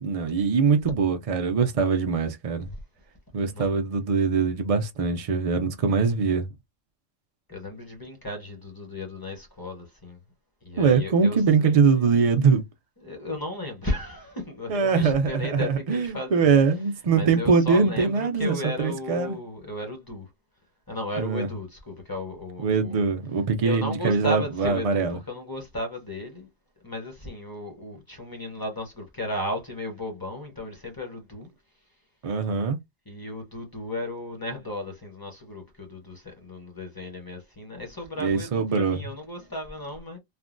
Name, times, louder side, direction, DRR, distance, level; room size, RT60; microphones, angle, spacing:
voice 1, 0.0-2.7 3.3-6.5 10.8-12.6 14.7-19.4 21.2-21.5 22.6-25.2 32.2-32.8 38.2-39.0, right 5 dB, 70° right, 0.3 m, -22 dB
voice 2, 7.5-10.2 10.6-12.2 13.0-16.5 17.1-20.3 20.9-23.0 23.6-26.5 26.8-31.5 33.1-40.2, left 1 dB, 20° left, 0.7 m, -35 dB
3.3 x 2.2 x 2.5 m
omnidirectional pair, 1.3 m